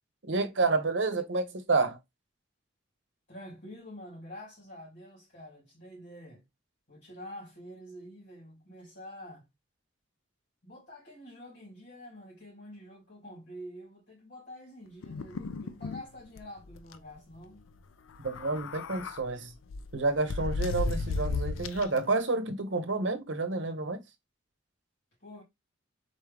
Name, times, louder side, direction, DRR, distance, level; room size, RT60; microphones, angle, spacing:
voice 1, 0.2-2.0 18.2-19.5 19.9-24.0, right 3 dB, 65° right, 0.9 m, -29 dB
voice 2, 3.3-6.4 6.9-9.5 10.6-17.6 25.2-25.4, equal, 65° left, 2.8 m, -47 dB
sound 1, 15.0-16.0 16.4-16.5 16.7-17.0 18.1-19.2 19.7-22.0, left 3 dB, 85° left, 0.4 m, -34 dB
4.0 x 3.6 x 3.3 m
head